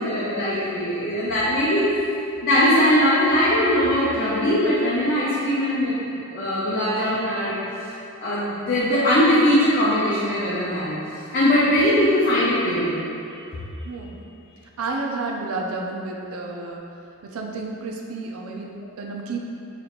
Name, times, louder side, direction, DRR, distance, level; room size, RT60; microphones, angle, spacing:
voice 1, 0.0-2.0 2.4-7.5 8.2-10.9 11.3-12.9 18.8-18.9, left 1 dB, 45° left, -10 dB, 0.6 m, -20 dB
voice 2, 13.8-14.2 14.8-16.8 17.3-19.4, right 3 dB, 80° right, 0 dB, 0.5 m, -31 dB
4.0 x 3.2 x 3.0 m, 2.8 s
head